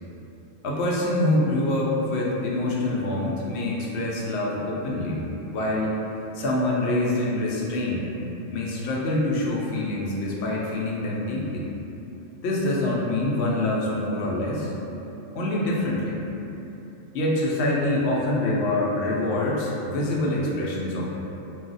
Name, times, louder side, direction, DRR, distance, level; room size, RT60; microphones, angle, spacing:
voice 1, 0.6-5.2 5.5-6.0 6.3-8.1 8.5-11.7 12.4-14.7 15.3-16.2 17.1-21.1, left 1 dB, 65° left, -4 dB, 0.8 m, -25 dB
2.3 x 2.1 x 3.8 m, 3.0 s
omnidirectional pair, 1.3 m